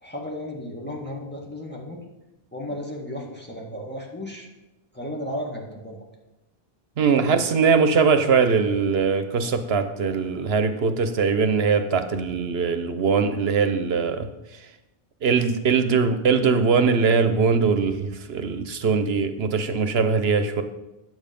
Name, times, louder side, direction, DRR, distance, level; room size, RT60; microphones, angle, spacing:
voice 1, 0.0-2.0 2.5-4.5 4.9-6.0 7.1-7.3 18.9-19.1, left 1 dB, 10° left, -2 dB, 1.8 m, -34 dB
voice 2, 7.0-14.3 15.2-20.6, right 5 dB, 75° right, 9 dB, 1.1 m, -21 dB
9.6 x 7.9 x 5.2 m, 0.99 s
omnidirectional pair, 1.1 m